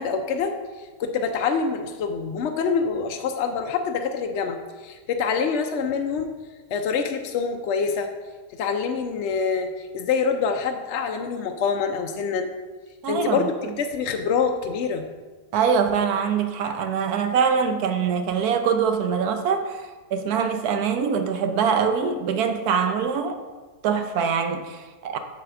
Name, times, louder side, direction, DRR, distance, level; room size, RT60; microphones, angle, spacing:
voice 1, 0.0-6.3 6.7-8.1 8.5-12.5 13.1-15.1, left 5 dB, 70° left, 0.6 m, -26 dB
voice 2, 13.0-13.5 15.5-23.4 23.8-25.2, right 6 dB, 70° right, 1.1 m, -23 dB
7.5 x 4.1 x 6.8 m
omnidirectional pair, 1.8 m